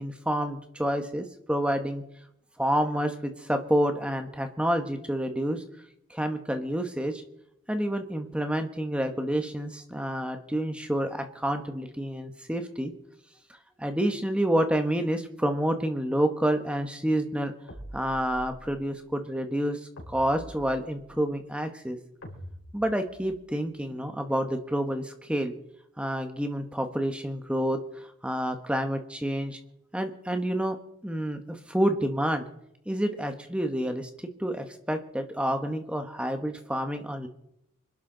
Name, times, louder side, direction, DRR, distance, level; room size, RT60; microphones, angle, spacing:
voice 1, 0.0-2.0 2.6-5.6 6.1-7.2 7.7-12.9 13.8-17.5 17.9-19.8 20.1-22.0 22.7-25.5 26.0-27.8 28.2-29.6 29.9-30.8 31.0-32.5 32.9-34.1 34.4-37.3, equal, 5° right, 6 dB, 1.2 m, -28 dB
sound 1, 17.7-18.8 20.0-21.2 22.2-23.5, equal, 85° left, 4.7 m, -45 dB
26.0 x 11.5 x 3.9 m, 0.77 s
head